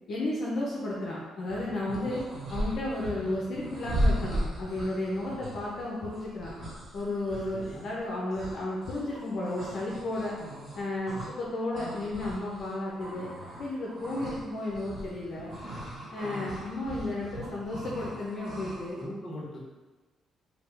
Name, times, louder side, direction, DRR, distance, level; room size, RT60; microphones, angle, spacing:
voice 1, 0.1-2.2 2.5-6.5 6.9-10.3 10.7-13.3 13.6-15.5 16.1-19.0, left 2 dB, 60° left, -5 dB, 0.6 m, -33 dB
sound 1, 1.5-11.5 11.7-19.0, equal, 25° right, 1.2 m, -37 dB
voice 2, 7.3-7.8 11.1-11.3 16.2-16.5 18.9-19.7, left 1 dB, 30° left, -6 dB, 1.1 m, -41 dB
3.3 x 2.2 x 3.3 m, 1.2 s
cardioid pair, 90°, 0 cm